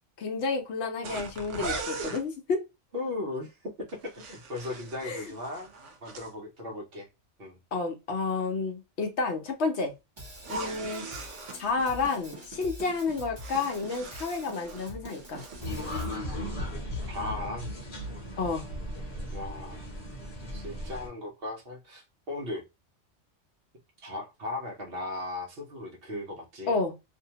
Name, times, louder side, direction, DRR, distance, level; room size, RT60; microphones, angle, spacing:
voice 1, 0.2-2.7 5.0-5.2 7.7-9.9 10.5-11.1 11.6-15.4 18.4-18.7 26.7-26.9, left 4 dB, 70° left, 0.9 m, -30 dB
sound 1, 1.0-2.2 3.9-6.3 10.4-11.6 13.0-14.9 15.2-15.7, right 3 dB, 85° right, 1.0 m, -40 dB
voice 2, 2.9-5.7 6.0-7.1 7.4-7.6 16.2-16.5 17.1-17.7 19.3-19.9 20.5-22.6 24.0-26.8, left 2 dB, 55° right, 0.9 m, -37 dB
Drum kit / Drum, 10.2-16.2, right 1 dB, 25° right, 0.9 m, -45 dB
sound 2, 15.6-21.1, left 1 dB, 35° left, 0.9 m, -36 dB
2.6 x 2.2 x 2.8 m
omnidirectional pair, 1.2 m